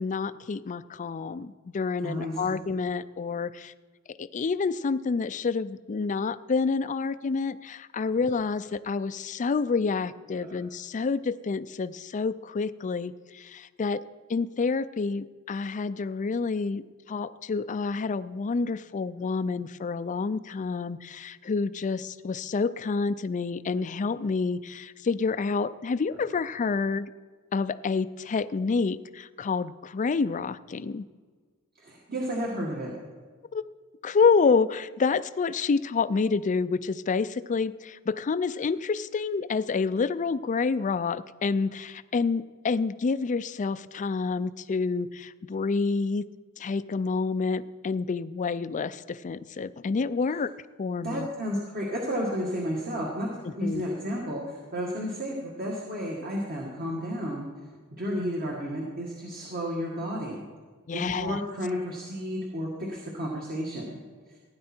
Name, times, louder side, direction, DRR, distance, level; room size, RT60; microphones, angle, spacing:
voice 1, 0.0-3.7 4.2-14.0 14.3-16.8 17.1-27.1 27.5-31.1 33.5-33.6 34.0-46.3 46.6-50.5 50.8-51.3 53.4-53.9 60.9-61.4, left 4 dB, 35° left, 15 dB, 0.4 m, -28 dB
voice 2, 31.8-32.9 51.0-57.5 57.9-60.4 61.1-64.0, equal, 45° right, -2 dB, 1.9 m, -32 dB
16.0 x 9.7 x 4.4 m, 1.5 s
head